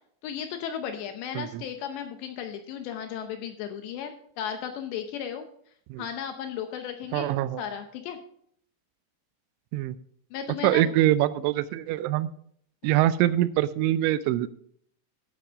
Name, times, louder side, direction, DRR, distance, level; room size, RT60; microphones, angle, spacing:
voice 1, 0.2-5.5 6.0-7.3 7.6-8.2 10.3-10.9, left 8 dB, 75° left, 6 dB, 2.7 m, -35 dB
voice 2, 7.1-7.6 9.7-10.0 10.6-12.3 12.8-14.5, right 13 dB, 85° right, 15 dB, 2.9 m, -24 dB
12.0 x 9.0 x 3.6 m, 0.63 s
omnidirectional pair, 5.6 m